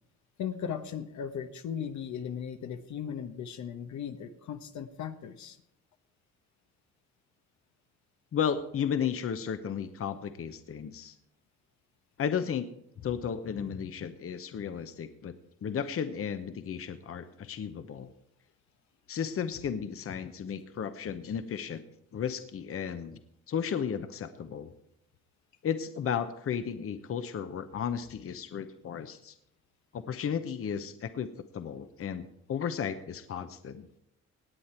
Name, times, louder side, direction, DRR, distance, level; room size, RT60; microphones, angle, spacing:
voice 1, 0.4-5.6, left 8 dB, 70° left, 8 dB, 1.1 m, -37 dB
voice 2, 8.3-11.1 12.2-12.7 13.0-15.3 15.6-18.1 19.1-21.8 22.1-23.2 23.5-24.7 25.6-29.3 29.9-33.9, left 7 dB, 50° left, 10 dB, 1.0 m, -34 dB
18.0 x 8.5 x 4.5 m, 0.76 s
cardioid pair, 90°, 30 cm